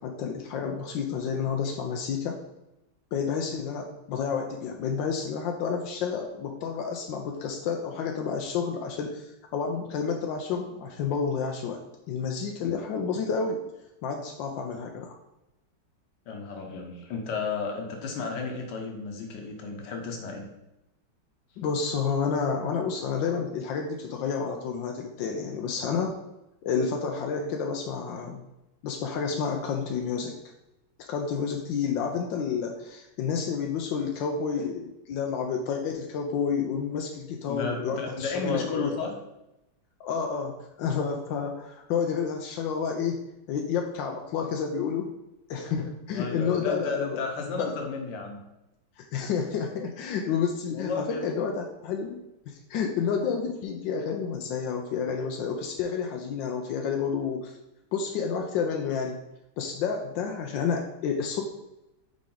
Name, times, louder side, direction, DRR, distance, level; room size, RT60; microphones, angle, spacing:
voice 1, 0.0-2.4 3.1-11.8 12.1-13.6 14.0-15.1 21.6-26.2 26.6-28.4 28.8-30.4 31.0-38.9 40.0-43.2 43.5-45.1 45.5-47.2 47.5-47.7 49.0-52.2 52.5-57.6 57.9-59.2 59.6-61.4, left 6 dB, 85° left, 2 dB, 1.4 m, -30 dB
voice 2, 16.3-20.5 37.5-39.1 46.1-48.4 50.7-51.2, left 4 dB, 70° left, 2 dB, 1.6 m, -33 dB
5.8 x 4.7 x 3.8 m, 0.92 s
omnidirectional pair, 2.0 m